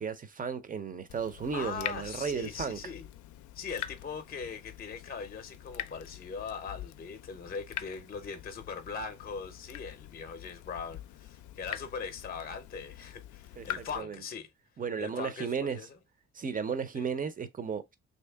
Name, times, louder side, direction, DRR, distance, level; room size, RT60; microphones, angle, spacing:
voice 1, 0.0-2.8 13.6-14.2 14.8-15.9 16.3-18.0, right 6 dB, 30° right, 0.6 m, -34 dB
Water tap faucet / Drip, 1.1-14.0, left 13 dB, 75° left, 0.4 m, -44 dB
voice 2, 1.5-3.1 3.5-14.5 15.0-15.9 17.0-17.1, left 5 dB, 30° left, 0.6 m, -40 dB
3.0 x 2.8 x 3.4 m
cardioid pair, 90°, 30 cm